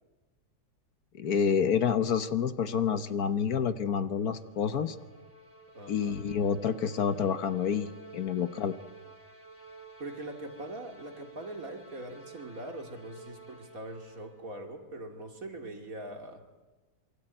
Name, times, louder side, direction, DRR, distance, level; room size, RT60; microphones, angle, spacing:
voice 1, 1.2-5.0 5.9-8.7, left 7 dB, 65° left, 12 dB, 1.5 m, -28 dB
sound 1, 4.0-14.5, right 3 dB, 5° left, 4.0 m, -52 dB
voice 2, 5.7-6.2 10.0-16.4, right 1 dB, 55° right, 5 dB, 3.1 m, -42 dB
27.0 x 23.5 x 9.0 m, 1.2 s
omnidirectional pair, 1.8 m